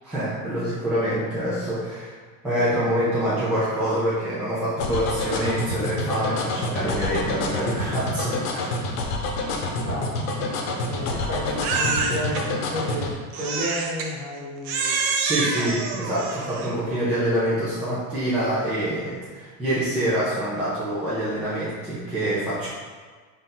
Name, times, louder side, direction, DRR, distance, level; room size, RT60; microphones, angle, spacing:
voice 1, 0.0-2.1 2.4-8.7 15.2-22.7, right 1 dB, 5° right, -12 dB, 0.4 m, -26 dB
sound 1, 4.8-13.1, left 2 dB, 80° left, 0.8 m, -27 dB
voice 2, 9.6-10.1 10.8-15.0, left 1 dB, 35° right, -6 dB, 1.2 m, -32 dB
Crying sobbing, 11.6-12.4 13.3-14.1 14.6-16.8, right 4 dB, 55° right, 0.6 m, -26 dB
3.9 x 2.6 x 4.0 m, 1.5 s
cardioid pair, 170°, 38 cm